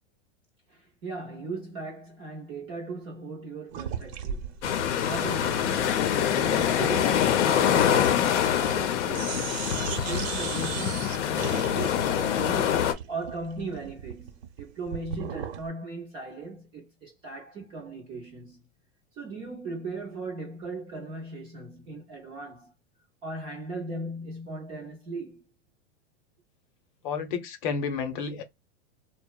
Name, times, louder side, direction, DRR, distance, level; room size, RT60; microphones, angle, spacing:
voice 1, 0.7-4.6 5.0-8.3 8.6-18.7 19.2-22.7 23.2-25.4, right 3 dB, 15° right, 0.3 m, -38 dB
sound 1, 3.7-8.9 9.1-15.7, right 8 dB, 70° right, 0.7 m, -38 dB
sound 2, 4.6-12.9, left 9 dB, 90° left, 0.6 m, -25 dB
voice 2, 27.0-28.4, left 5 dB, 50° left, 0.7 m, -31 dB
2.8 x 2.0 x 2.2 m
supercardioid pair, 165°, 34 cm